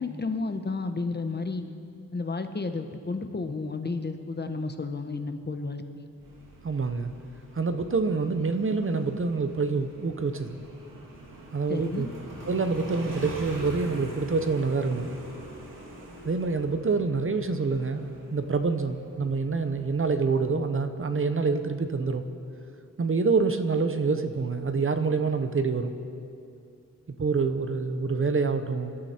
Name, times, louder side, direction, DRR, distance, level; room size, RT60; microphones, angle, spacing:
voice 1, 0.0-1.7 2.1-6.0 11.7-12.1, left 3 dB, 30° left, 7 dB, 0.9 m, -32 dB
Motorcycle, 6.2-20.5, right 1 dB, 75° right, 2.6 m, -44 dB
voice 2, 6.6-7.1 7.5-10.6 11.5-12.1 12.4-15.2 16.2-22.2 23.0-25.9 27.2-28.9, right 4 dB, 40° right, 8 dB, 0.8 m, -26 dB
26.5 x 12.5 x 4.4 m, 2.5 s
wide cardioid pair, 160°, 33 cm